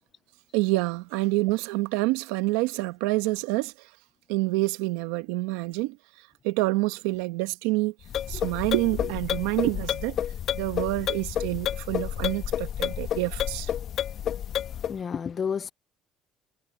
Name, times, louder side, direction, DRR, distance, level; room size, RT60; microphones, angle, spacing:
voice 1, 0.5-3.7 4.3-6.0 6.4-7.9 8.3-10.2 10.5-13.7, right 20 dB, 85° right, 1.2 m, -27 dB
sound 1, 8.0-15.0, left 10 dB, 60° left, 1.8 m, -30 dB
voice 2, 14.7-15.7, left 7 dB, 45° left, 0.6 m, -31 dB
supercardioid pair, 80°, 0 cm